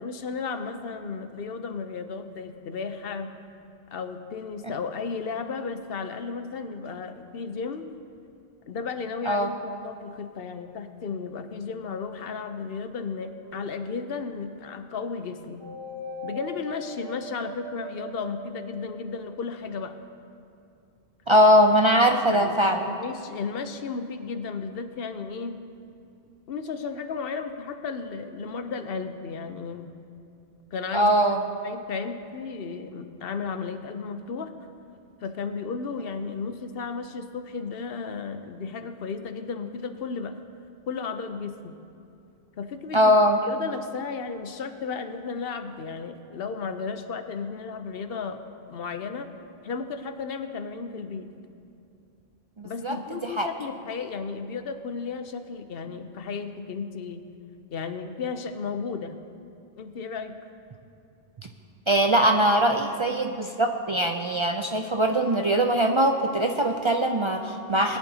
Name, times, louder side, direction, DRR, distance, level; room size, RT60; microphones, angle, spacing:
voice 1, 0.0-3.3 3.9-7.9 8.7-15.6 16.2-20.0 22.2-22.5 22.8-25.6 26.5-29.9 30.7-31.1 31.6-34.5 35.2-40.4 40.9-41.8 42.6-43.2 43.4-48.4 48.7-49.3 49.6-51.3 52.6-57.2 57.7-59.2 59.7-60.3, left 5 dB, 70° left, 9 dB, 0.9 m, -34 dB
sound 1, 13.4-14.2 15.6-19.4, equal, 20° right, 0.9 m, -40 dB
voice 2, 21.3-22.9 30.9-31.4 42.9-43.4 52.6-53.0 53.2-53.5 61.9-68.0, equal, 40° right, 3 dB, 0.4 m, -21 dB
20.0 x 10.5 x 2.8 m, 2.6 s
omnidirectional pair, 1.0 m